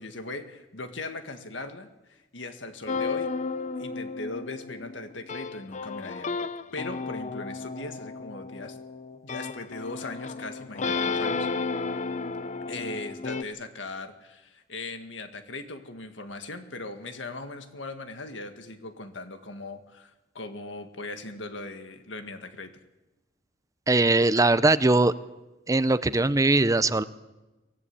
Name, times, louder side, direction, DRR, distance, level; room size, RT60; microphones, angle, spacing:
voice 1, 0.0-3.3 3.8-6.4 6.7-8.8 9.2-11.5 12.7-22.7, left 2 dB, 85° left, 8 dB, 2.0 m, -39 dB
sound 1, 2.9-13.4, left 4 dB, 40° left, 0.7 m, -33 dB
voice 2, 23.9-25.1 25.7-27.0, right 2 dB, 20° right, 15 dB, 0.6 m, -21 dB
23.5 x 15.5 x 8.5 m, 1.1 s
head